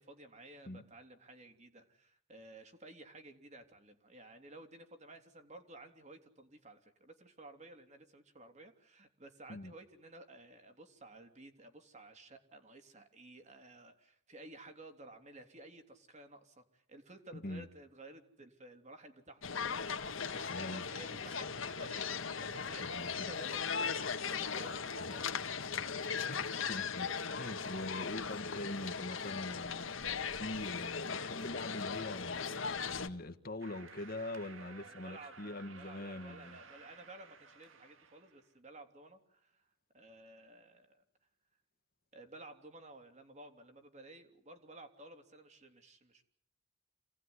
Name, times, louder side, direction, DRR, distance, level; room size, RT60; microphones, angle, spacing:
voice 1, 0.0-25.8 34.5-39.7 39.9-41.0 42.1-46.2, right 2 dB, 35° right, 3.3 m, -54 dB
voice 2, 17.3-17.7 20.5-20.8 22.8-23.3 25.1-25.2 26.2-30.1 30.3-32.4 32.9-36.6, left 1 dB, 50° left, 1.5 m, -43 dB
sound 1, 19.4-33.1, left 6 dB, 80° left, 1.7 m, -38 dB
sound 2, 33.6-38.5, right 5 dB, 80° right, 2.1 m, -56 dB
28.0 x 18.0 x 9.8 m
head